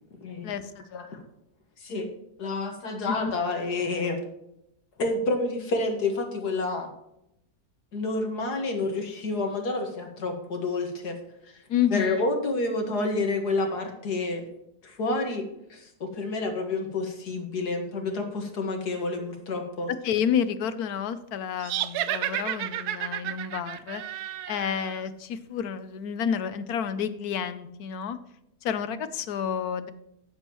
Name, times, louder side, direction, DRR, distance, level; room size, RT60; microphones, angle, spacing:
voice 1, 0.4-1.2 3.1-3.3 11.7-12.2 19.9-24.0 24.5-28.2 28.6-29.9, left 8 dB, 75° left, 12 dB, 1.2 m, -30 dB
voice 2, 2.4-4.2 5.0-6.9 7.9-11.2 11.9-14.4 14.8-15.4 15.7-19.9, left 3 dB, 90° left, 3 dB, 2.2 m, -29 dB
sound 1, 21.6-25.0, right 12 dB, 80° right, 1.1 m, -32 dB
15.0 x 7.3 x 3.0 m, 0.80 s
omnidirectional pair, 1.7 m